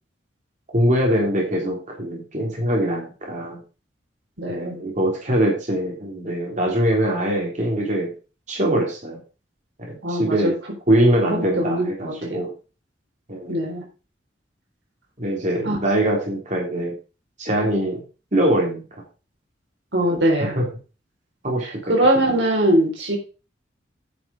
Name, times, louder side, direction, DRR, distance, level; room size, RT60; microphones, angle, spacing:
voice 1, 0.7-3.6 4.5-8.1 8.5-9.2 10.1-10.5 10.9-12.5 13.3-13.7 15.2-16.9 17.4-18.0 18.3-18.8 20.1-20.7 21.4-21.7 22.3-22.4, right 1 dB, 40° right, -1 dB, 3.5 m, -22 dB
voice 2, 4.4-4.8 10.0-10.5 11.2-12.4 13.5-13.8 15.6-15.8 19.9-20.6 21.6-23.2, right 1 dB, 85° right, 0 dB, 4.1 m, -21 dB
9.8 x 6.3 x 4.9 m, 0.33 s
head